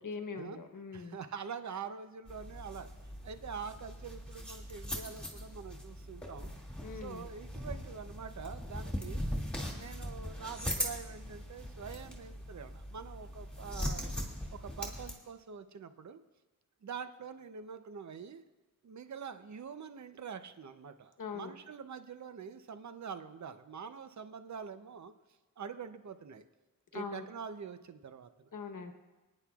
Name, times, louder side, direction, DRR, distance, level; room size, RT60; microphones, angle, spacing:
voice 1, 0.0-1.2 6.8-7.3 21.2-21.5 26.9-27.3 28.5-28.9, left 5 dB, 70° left, 6 dB, 1.1 m, -42 dB
voice 2, 0.9-2.9 3.2-6.5 6.9-9.2 9.7-14.1 14.5-16.2 16.8-18.4 18.8-25.1 25.6-26.4 26.9-28.5, right 6 dB, 55° right, 10 dB, 0.7 m, -45 dB
sound 1, 2.3-15.1, equal, 5° left, 2.3 m, -40 dB
25.0 x 9.9 x 2.4 m, 1.2 s
wide cardioid pair, 115°, 33 cm